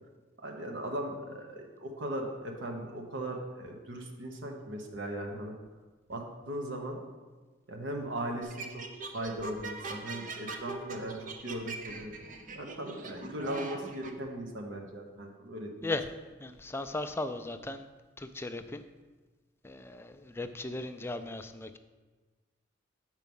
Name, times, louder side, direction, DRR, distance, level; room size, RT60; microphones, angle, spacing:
voice 1, 0.4-5.5 6.1-7.0 7.7-8.8 9.1-12.1 12.5-15.9, right 1 dB, 65° right, 2 dB, 1.0 m, -38 dB
sound 1, 8.4-14.1, right 3 dB, 40° right, 0.6 m, -41 dB
voice 2, 16.4-17.9 18.2-18.8 19.6-21.8, left 2 dB, 10° left, 9 dB, 0.3 m, -37 dB
7.4 x 4.6 x 5.4 m, 1.3 s
head